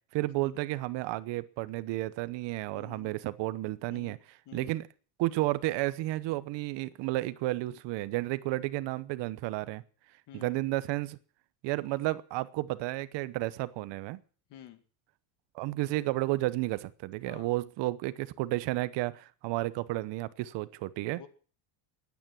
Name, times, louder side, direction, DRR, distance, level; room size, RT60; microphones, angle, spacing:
voice 1, 0.1-4.2 4.5-4.8 5.2-9.8 10.3-11.2 11.6-14.2 15.5-21.2, right 18 dB, 60° right, 16 dB, 1.0 m, -32 dB
voice 2, 2.7-3.2 3.9-4.2 4.5-4.7 10.3-10.6 14.5-14.8 17.2-17.5 21.2-21.3, left 11 dB, 55° left, 10 dB, 2.3 m, -50 dB
21.5 x 9.6 x 6.1 m, 0.42 s
supercardioid pair, 115°, 49 cm